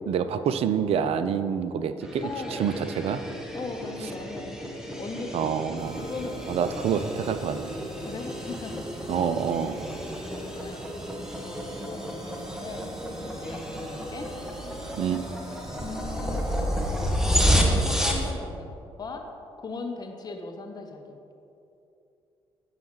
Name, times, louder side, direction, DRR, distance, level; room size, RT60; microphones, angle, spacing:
voice 1, 0.1-2.2 2.6-3.2 5.3-6.0 6.5-7.8 9.1-9.9 15.0-15.2, right 7 dB, 45° right, 11 dB, 0.5 m, -27 dB
sound 1, 2.0-18.3, equal, 5° right, 1.4 m, -31 dB
voice 2, 2.2-2.8 3.5-4.6 5.0-5.7 6.0-6.5 8.0-9.3 10.1-11.1 11.4-14.3 15.8-16.5 17.4-18.7 19.0-19.3 19.6-21.2, left 3 dB, 30° left, 4 dB, 0.8 m, -39 dB
sound 2, 5.8-18.3, right 2 dB, 30° right, 0.9 m, -42 dB
15.5 x 5.7 x 3.1 m, 2.8 s
figure-of-eight pair, 40°, 14 cm